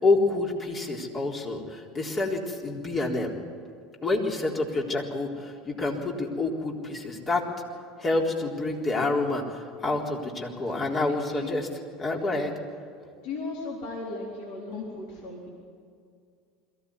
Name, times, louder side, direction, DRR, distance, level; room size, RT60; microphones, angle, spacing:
voice 1, 0.0-3.4 4.0-7.4 8.0-11.7 12.0-12.5, left 2 dB, 30° left, 0 dB, 3.9 m, -28 dB
voice 2, 11.1-11.5 13.2-15.5, left 3 dB, 65° left, -2 dB, 3.9 m, -37 dB
22.5 x 15.5 x 9.6 m, 2.2 s
hypercardioid pair, 75°, 0 cm